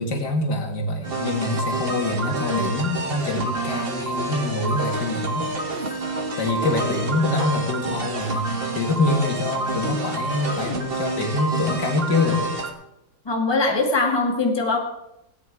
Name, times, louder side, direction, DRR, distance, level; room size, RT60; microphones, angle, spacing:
voice 1, 0.0-5.5 5.8-6.0 6.4-12.5, left 2 dB, 70° left, 3 dB, 2.3 m, -25 dB
sound 1, 1.0-12.7, right 2 dB, 35° right, 1.5 m, -28 dB
voice 2, 13.3-14.8, left 3 dB, 15° left, 1 dB, 1.9 m, -21 dB
17.5 x 9.0 x 4.7 m, 0.85 s
omnidirectional pair, 1.9 m